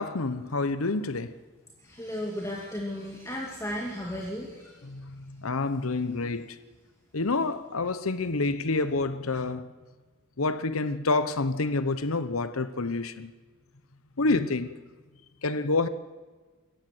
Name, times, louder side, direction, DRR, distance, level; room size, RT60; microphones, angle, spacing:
voice 1, 0.0-1.3 4.8-6.6 7.1-9.7 10.4-13.3 14.2-14.8 15.4-15.9, left 3 dB, 85° left, 1.0 m, -28 dB
voice 2, 1.9-4.7, equal, 15° left, 2.6 m, -34 dB
26.0 x 15.0 x 7.9 m
head